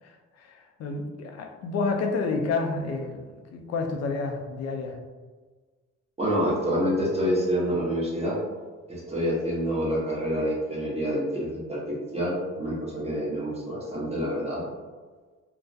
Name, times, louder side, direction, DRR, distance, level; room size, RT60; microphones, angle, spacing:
voice 1, 0.0-5.0, left 4 dB, 60° left, 3 dB, 0.4 m, -30 dB
voice 2, 6.2-8.4 8.9-14.6, equal, 20° right, -5 dB, 0.9 m, -27 dB
2.3 x 2.1 x 2.6 m, 1.4 s
cardioid pair, 90°, 30 cm